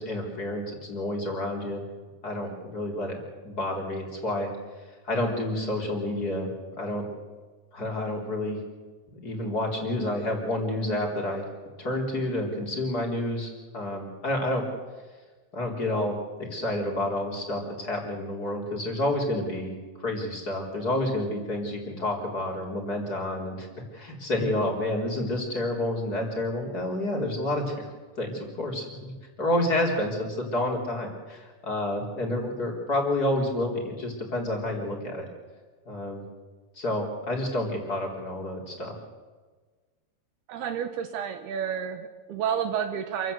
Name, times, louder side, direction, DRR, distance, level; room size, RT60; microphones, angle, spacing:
voice 1, 0.0-1.8 2.2-3.2 3.4-4.5 5.0-6.5 6.8-7.1 7.7-8.6 9.1-11.5 11.8-14.6 15.5-16.1 16.4-19.7 20.0-23.7 23.9-27.8 28.2-35.3 35.9-36.2 36.8-38.9, left 1 dB, 20° left, 1 dB, 3.8 m, -29 dB
voice 2, 40.5-43.3, right 8 dB, 70° right, 8 dB, 2.8 m, -30 dB
27.5 x 15.5 x 8.0 m, 1.4 s
omnidirectional pair, 5.2 m